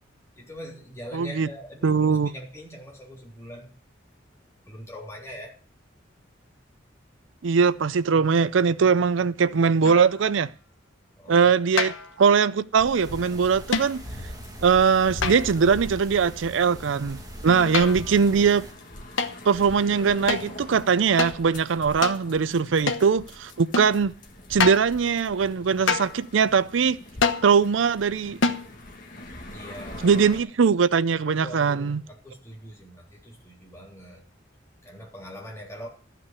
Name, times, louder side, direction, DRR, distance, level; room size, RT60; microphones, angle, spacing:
voice 1, 0.4-3.7 4.7-5.5 11.2-11.5 17.5-18.0 29.5-30.3 31.4-34.2 34.8-35.9, equal, 15° left, 3.8 m, -42 dB
voice 2, 1.1-1.5 1.8-2.3 7.4-10.5 11.3-14.0 14.6-18.6 19.5-24.1 24.5-27.0 27.4-28.4 30.0-32.0, right 6 dB, 80° right, 0.5 m, -21 dB
sound 1, 9.8-10.2 11.8-12.2 13.7-14.1 15.2-15.7 17.5-18.2 19.2-19.4 20.3-20.5 21.2-21.4 22.0-22.2 22.9-23.1 23.7-24.0 24.6-24.9 25.9-26.2 27.2-27.5 28.4-28.7, left 4 dB, 80° left, 1.1 m, -26 dB
sound 2, 12.8-30.4, left 1 dB, 45° left, 1.8 m, -42 dB
sound 3, 13.0-18.7, right 1 dB, 20° right, 1.7 m, -45 dB
13.0 x 5.9 x 8.2 m
head